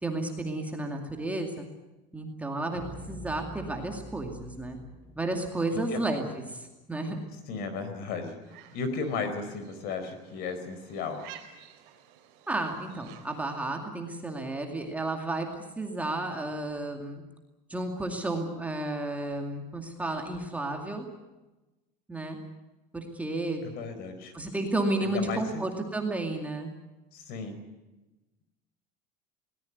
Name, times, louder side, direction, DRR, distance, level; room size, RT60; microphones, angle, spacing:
voice 1, 0.0-1.7 2.1-2.8 3.1-4.8 5.2-7.2 12.5-15.5 15.8-17.2 17.7-21.1 22.1-22.4 22.9-23.6 24.3-26.7, right 2 dB, 5° right, 2 dB, 2.2 m, -32 dB
sound 1, 2.7-6.8, equal, 10° left, 4.8 m, -47 dB
voice 2, 7.5-8.4 8.7-11.2 23.6-24.3 25.0-25.6 27.1-27.6, left 4 dB, 50° left, 9 dB, 4.5 m, -34 dB
sound 2, 8.4-13.7, right 11 dB, 60° right, 3.5 m, -53 dB
21.5 x 18.5 x 9.4 m, 1.1 s
cardioid pair, 165°, 20 cm